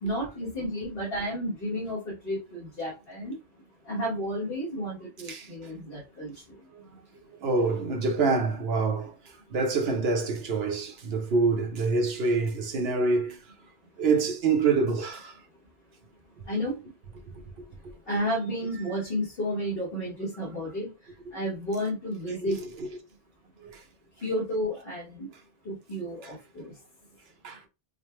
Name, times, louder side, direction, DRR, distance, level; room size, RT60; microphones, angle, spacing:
voice 1, 0.0-3.4 3.9-6.6 16.5-16.8 18.1-20.9 21.3-22.6 24.2-25.3 25.7-26.7, equal, 60° left, 1.7 m, -32 dB
voice 2, 7.4-9.2 9.5-13.4 14.0-15.4 22.4-23.0 23.6-23.8 27.4-27.6, right 4 dB, 70° right, 1.0 m, -26 dB
5.0 x 2.1 x 3.1 m
omnidirectional pair, 1.1 m